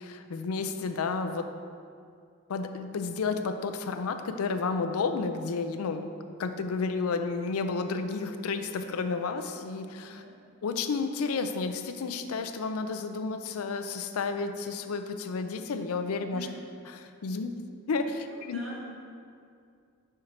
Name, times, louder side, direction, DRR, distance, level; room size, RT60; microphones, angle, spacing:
voice 1, 0.0-1.5 2.5-6.1 6.4-10.2 10.6-16.5 16.9-18.6, left 4 dB, 85° left, 8 dB, 0.4 m, -31 dB
voice 2, 10.1-10.4 16.3-16.6 18.0-18.9, right 1 dB, 70° right, -3 dB, 1.3 m, -45 dB
5.7 x 4.4 x 5.0 m, 2.3 s
head